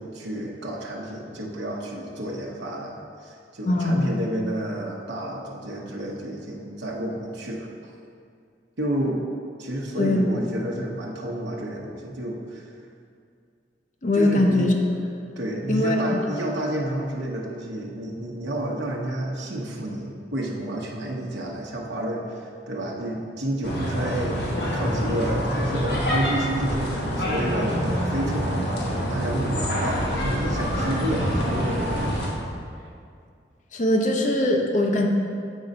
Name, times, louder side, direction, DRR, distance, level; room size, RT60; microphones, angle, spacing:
voice 1, 0.0-7.7 8.8-9.2 9.6-12.7 14.1-14.7 15.4-32.1, right 1 dB, 75° right, -2 dB, 0.9 m, -30 dB
voice 2, 3.7-4.2 10.0-10.3 14.0-14.8 15.7-16.2 33.7-35.1, left 1 dB, 45° left, 1 dB, 0.7 m, -21 dB
sound 1, 23.6-32.3, equal, 65° left, 1.3 m, -26 dB
7.3 x 3.9 x 5.2 m, 2.3 s
head